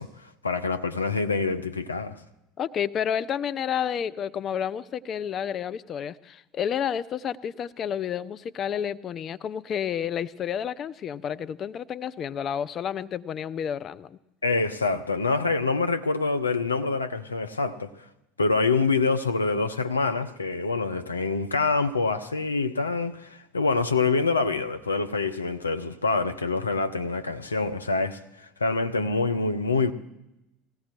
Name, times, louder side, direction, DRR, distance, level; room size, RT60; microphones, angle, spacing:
voice 1, 0.0-2.2 14.4-18.0 18.4-29.9, left 3 dB, 85° left, 0.7 m, -26 dB
voice 2, 2.6-14.2, left 8 dB, 40° left, 0.6 m, -30 dB
20.0 x 16.0 x 4.4 m
figure-of-eight pair, 70°, 0 cm